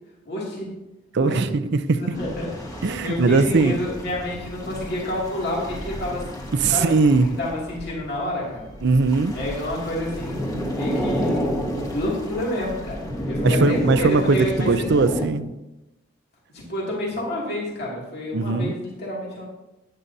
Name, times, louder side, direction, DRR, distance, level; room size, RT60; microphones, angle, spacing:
voice 1, 0.3-0.7 1.2-1.5 1.9-2.5 2.8-6.3 6.7-7.0 7.4-8.7 9.3-11.5 11.8-14.8 16.5-19.4, left 1 dB, 55° left, -4 dB, 2.5 m, -29 dB
voice 2, 1.1-2.2 2.8-3.8 6.5-7.4 8.8-9.3 13.4-15.5 18.3-18.8, right 3 dB, 60° right, 11 dB, 0.5 m, -20 dB
sound 1, 2.1-15.3, equal, 20° left, 1.4 m, -31 dB
11.0 x 10.0 x 2.8 m, 0.97 s
head